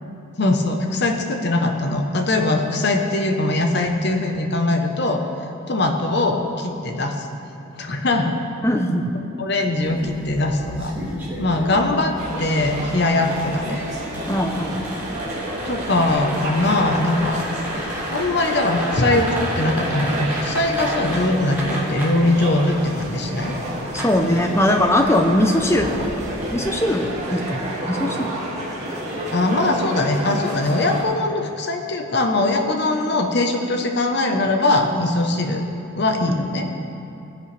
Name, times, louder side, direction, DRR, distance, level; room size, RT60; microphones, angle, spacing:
voice 1, 0.4-5.2 5.7-7.3 7.8-8.3 9.4-10.9 11.4-13.8 15.6-17.5 17.8-23.5 29.3-35.6 36.0-36.7, left 2 dB, 50° left, 3 dB, 1.0 m, -21 dB
voice 2, 8.6-9.1 14.3-14.8 23.9-26.1 26.5-27.6 27.9-28.3 36.3-36.4, left 1 dB, 10° left, 4 dB, 0.7 m, -20 dB
sound 1, 9.8-26.7, right 1 dB, 10° right, 2.6 m, -33 dB
sound 2, 12.1-31.0, right 1 dB, 30° right, 2.1 m, -30 dB
17.5 x 10.5 x 3.4 m, 2.8 s
head